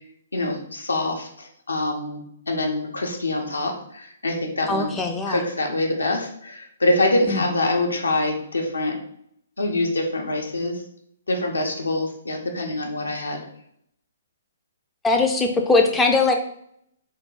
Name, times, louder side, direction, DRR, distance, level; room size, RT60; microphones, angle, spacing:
voice 1, 0.3-4.9 5.3-9.0 9.6-10.8 11.3-13.4, left 2 dB, 85° left, 2 dB, 0.8 m, -25 dB
voice 2, 4.7-5.4 7.3-7.4 15.0-16.3, left 3 dB, 10° left, 2 dB, 0.4 m, -20 dB
3.7 x 2.2 x 3.9 m, 0.69 s
figure-of-eight pair, 125°, 0 cm